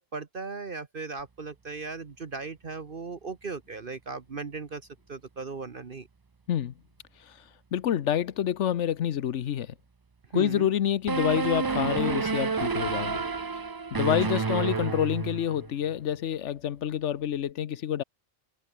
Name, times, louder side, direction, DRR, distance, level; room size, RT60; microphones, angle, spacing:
voice 1, 0.0-4.8 5.1-6.1 10.3-10.7 14.3-14.4, right 4 dB, 45° right, 1.4 m, -37 dB
voice 2, 7.7-9.7 10.3-13.2 13.9-18.0, left 10 dB, 75° left, 1.1 m, -27 dB
sound 1, 11.1-15.7, right 4 dB, 30° right, 0.4 m, -29 dB
omnidirectional pair, 1.2 m